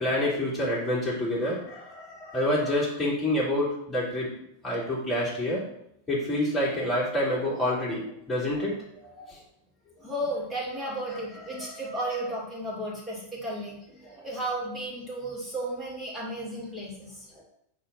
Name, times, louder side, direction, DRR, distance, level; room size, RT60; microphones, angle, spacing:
voice 1, 0.0-4.3 4.6-5.6 6.1-8.8 9.0-9.4 11.6-11.7 14.0-14.2, left 1 dB, 10° left, -8 dB, 3.2 m, -28 dB
voice 2, 10.0-17.3, right 1 dB, 10° right, -6 dB, 2.9 m, -34 dB
8.3 x 3.8 x 6.1 m, 0.75 s
figure-of-eight pair, 90°, 0 cm